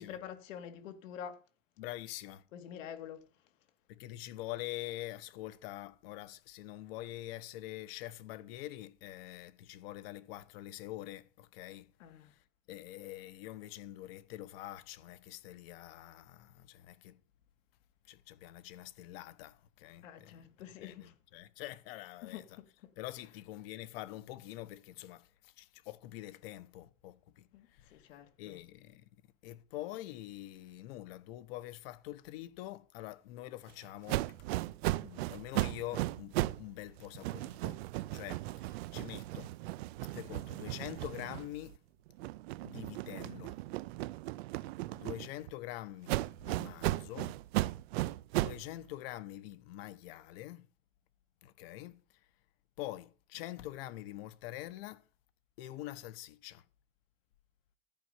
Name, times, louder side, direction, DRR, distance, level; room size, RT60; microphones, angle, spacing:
voice 1, 0.0-1.4 2.5-3.3 12.0-12.3 20.0-21.1 22.2-22.9 27.5-28.6, left 9 dB, 80° left, 2.3 m, -47 dB
voice 2, 1.8-2.5 3.9-11.9 12.7-17.1 18.1-20.4 20.8-22.5 23.0-27.9 28.4-29.0 29.4-34.3 34.8-37.8 38.1-39.5 40.1-41.8 42.6-43.6 44.9-47.4 48.4-50.7 51.4-51.9 52.8-55.0 55.6-56.6, left 15 dB, 50° left, 1.0 m, -45 dB
sound 1, 34.1-36.7 37.0-41.8 42.2-45.5 46.1-48.7, right 18 dB, 55° right, 0.5 m, -36 dB
14.0 x 5.5 x 8.0 m
supercardioid pair, 170°, 38 cm